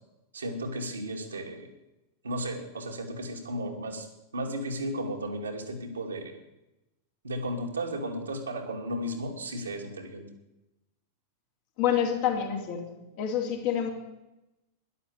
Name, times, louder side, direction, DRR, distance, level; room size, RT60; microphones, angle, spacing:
voice 1, 0.3-1.7 2.2-4.1 4.3-6.4 7.2-10.3, right 1 dB, 75° right, 2 dB, 2.5 m, -34 dB
voice 2, 11.8-13.9, left 9 dB, 50° left, 1 dB, 3.1 m, -28 dB
12.5 x 11.0 x 8.0 m, 0.94 s
figure-of-eight pair, 90°, 0 cm